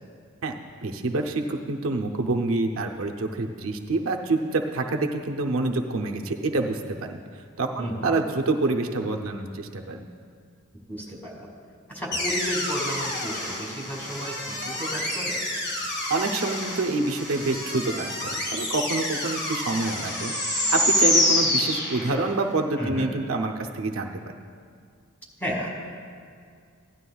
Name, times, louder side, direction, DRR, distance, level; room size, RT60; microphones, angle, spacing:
voice 1, 0.8-7.2 7.6-10.1 16.1-18.1 18.5-20.3 20.7-24.1, right 3 dB, 75° right, 3 dB, 0.7 m, -27 dB
voice 2, 7.8-8.1 10.9-11.5 11.9-15.4 22.8-23.1 25.4-25.7, equal, 10° left, -3 dB, 2.2 m, -33 dB
sound 1, 12.1-22.4, left 1 dB, 55° left, 1.8 m, -27 dB
16.5 x 11.5 x 2.3 m, 2.2 s
head